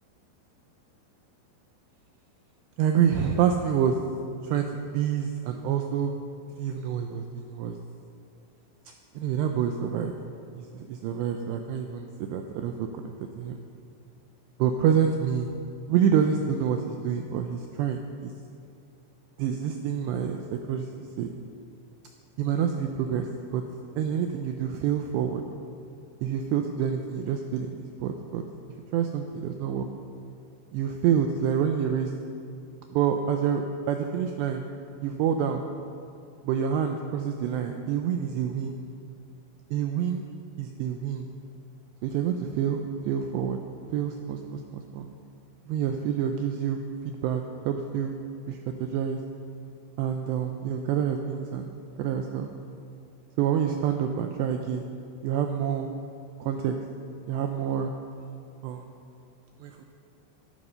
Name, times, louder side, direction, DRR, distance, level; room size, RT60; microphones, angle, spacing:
voice 1, 2.8-4.0 4.4-4.7 4.9-6.1 6.6-7.8 9.2-10.1 10.5-13.1 13.4-13.6 14.6-15.5 15.9-18.3 19.4-20.4 20.7-20.9 21.2-21.3 22.4-23.3 23.5-23.6 24.0-25.4 26.2-28.4 28.9-29.9 30.7-32.1 32.9-34.6 35.0-35.6 36.4-38.7 39.7-40.2 40.6-41.3 42.0-43.6 43.9-45.1 45.7-46.8 47.1-48.1 48.5-49.2 50.0-51.7 52.0-52.5 53.4-54.9 55.2-55.9 56.4-56.7 57.3-57.9 58.6-58.8 59.6-59.9, right 8 dB, 85° right, 5 dB, 2.5 m, -27 dB
13.5 x 12.5 x 5.6 m, 2.5 s
omnidirectional pair, 5.6 m